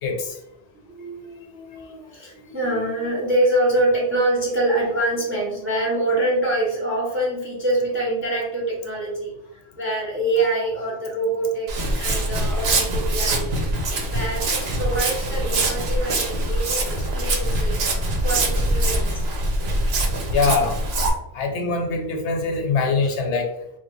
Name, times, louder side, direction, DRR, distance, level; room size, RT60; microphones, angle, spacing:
voice 1, 0.0-0.3 20.3-20.8 21.3-23.5, left 4 dB, 75° left, 3 dB, 0.9 m, -23 dB
voice 2, 0.7-13.7 14.1-17.8 18.2-19.2, right 1 dB, 15° right, -4 dB, 0.5 m, -25 dB
Walk footsteps, 11.7-21.1, right 1 dB, 65° right, 0.8 m, -23 dB
3.0 x 2.2 x 3.0 m, 0.81 s
omnidirectional pair, 1.2 m